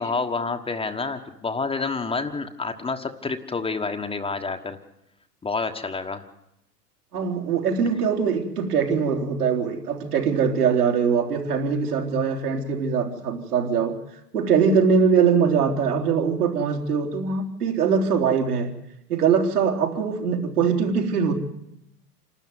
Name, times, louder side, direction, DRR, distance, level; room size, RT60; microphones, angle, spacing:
voice 1, 0.0-4.8 5.4-6.2, left 4 dB, 10° left, 1.4 m, -28 dB
voice 2, 7.1-14.0 14.3-18.7 19.1-21.3, right 6 dB, 70° right, 3.8 m, -22 dB
27.5 x 12.5 x 9.6 m
figure-of-eight pair, 95°, 47 cm